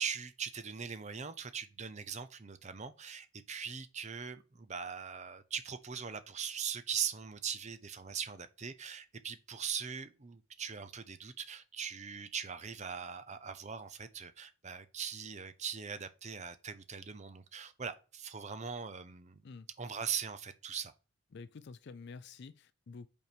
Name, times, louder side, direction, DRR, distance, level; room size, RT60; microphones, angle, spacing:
voice 1, 0.0-19.4 19.8-20.9, right 7 dB, 30° right, 0.6 m, -41 dB
voice 2, 21.3-23.1, left 4 dB, 50° left, 0.4 m, -49 dB
5.5 x 4.5 x 4.9 m
head